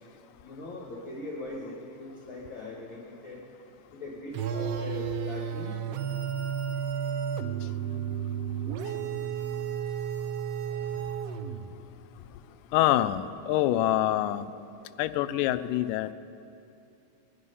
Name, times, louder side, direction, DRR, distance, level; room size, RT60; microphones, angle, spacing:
voice 1, 0.4-3.4 3.9-5.8, left 2 dB, 45° left, -3 dB, 2.0 m, -40 dB
sound 1, 4.3-11.8, right 8 dB, 85° right, 1.4 m, -32 dB
voice 2, 12.7-14.5 15.0-16.1, left 13 dB, 85° left, 12 dB, 2.2 m, -25 dB
21.5 x 11.0 x 5.5 m, 2.6 s
omnidirectional pair, 3.8 m